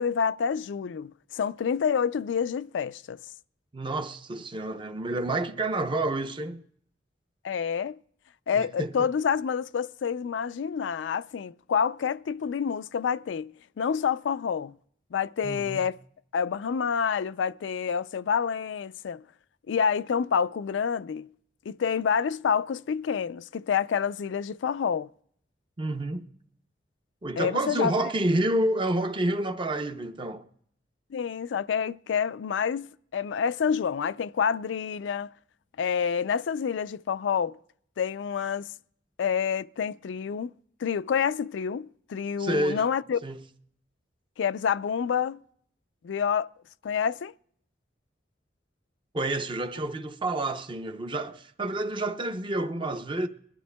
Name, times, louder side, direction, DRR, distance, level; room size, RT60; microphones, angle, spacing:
voice 1, 0.0-3.2 7.4-8.0 8.5-14.8 15.1-16.0 16.3-19.2 19.7-21.3 21.7-25.1 27.4-27.9 31.1-35.3 35.8-37.6 38.0-38.7 39.2-40.5 40.8-43.2 44.4-45.4 46.0-46.5 46.8-47.3, left 7 dB, 80° left, 0.4 m, -28 dB
voice 2, 3.7-6.6 8.5-9.1 15.4-15.8 25.8-26.3 27.2-30.5 42.4-42.9 43.2-43.4 49.1-53.3, right 1 dB, 25° right, 0.6 m, -29 dB
22.0 x 12.0 x 2.2 m
head